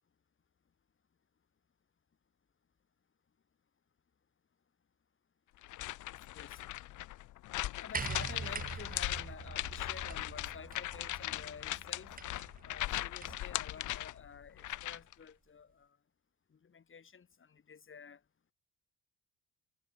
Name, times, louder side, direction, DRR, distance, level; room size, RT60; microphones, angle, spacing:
sound 1, 5.6-15.1, left 15 dB, 80° left, 0.9 m, -39 dB
voice 1, 6.3-7.0 7.8-12.1 12.6-16.0 16.5-18.2, left 6 dB, 40° left, 5.1 m, -51 dB
sound 2, 7.9-13.5 14.6-14.7, right 5 dB, 30° right, 1.6 m, -44 dB
cardioid pair, 90°, 30 cm